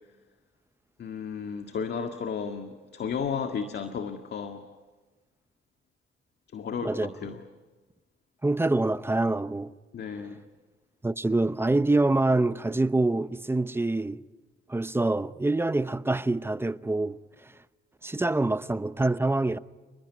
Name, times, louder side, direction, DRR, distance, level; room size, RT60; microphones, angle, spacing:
voice 1, 1.0-4.6 6.5-7.4 9.9-10.4, left 6 dB, 55° left, 1.9 m, -33 dB
voice 2, 8.4-9.7 11.0-14.2 14.7-17.5 18.0-19.6, right 2 dB, 10° right, 0.8 m, -26 dB
29.5 x 20.5 x 9.7 m
cardioid pair, 90°, 20 cm